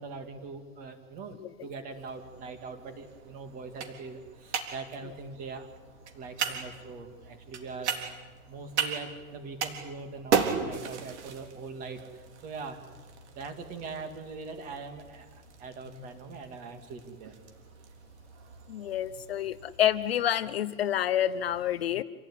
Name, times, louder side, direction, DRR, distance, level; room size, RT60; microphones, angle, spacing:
voice 1, 0.0-5.7 6.1-8.0 8.5-12.8 13.3-17.4, right 4 dB, 20° right, 7 dB, 2.1 m, -42 dB
sound 1, 1.9-19.8, right 6 dB, 55° right, 3.9 m, -37 dB
voice 2, 18.7-22.0, left 11 dB, 45° left, 14 dB, 0.7 m, -28 dB
28.0 x 17.5 x 10.0 m, 1.4 s
supercardioid pair, 180°, 42 cm